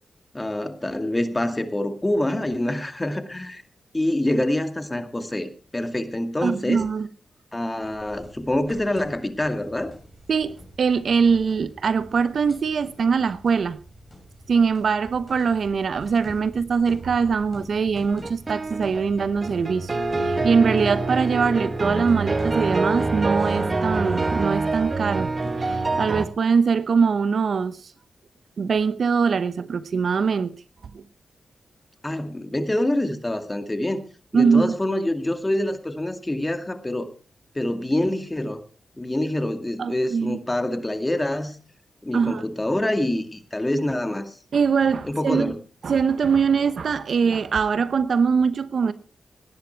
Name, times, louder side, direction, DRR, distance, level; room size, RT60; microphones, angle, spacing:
voice 1, 0.3-3.6 3.9-6.9 7.5-9.9 32.0-34.0 34.3-37.1 37.5-38.6 39.0-41.6 42.0-44.4 45.0-45.6, left 1 dB, 20° left, 2.2 m, -26 dB
voice 2, 6.4-7.1 10.3-13.8 14.5-27.8 28.6-30.5 30.9-31.0 34.3-34.7 39.8-40.4 42.1-42.4 44.5-45.5 45.8-48.9, right 5 dB, 70° right, 0.9 m, -22 dB
sound 1, 7.8-26.0, equal, ahead, 5.9 m, -45 dB
sound 2, 18.1-26.2, right 3 dB, 40° right, 1.5 m, -25 dB
18.5 x 10.5 x 4.6 m
cardioid pair, 70°, 0 cm